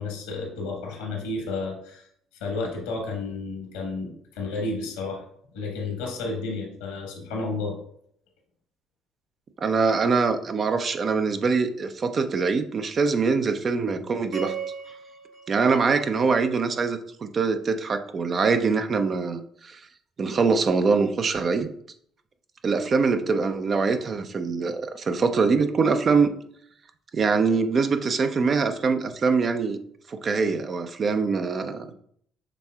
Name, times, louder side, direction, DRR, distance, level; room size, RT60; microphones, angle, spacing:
voice 1, 0.0-2.0 2.4-5.2 5.5-7.8, left 3 dB, 80° left, 1 dB, 1.2 m, -31 dB
voice 2, 9.6-14.5 15.5-19.8 20.2-21.7 22.6-26.3 27.1-29.8 30.1-31.9, right 4 dB, 40° right, 8 dB, 0.4 m, -23 dB
sound 1, 14.3-16.7, right 8 dB, 70° right, 1.9 m, -38 dB
5.9 x 3.5 x 2.3 m, 0.66 s
hypercardioid pair, 55°, 0 cm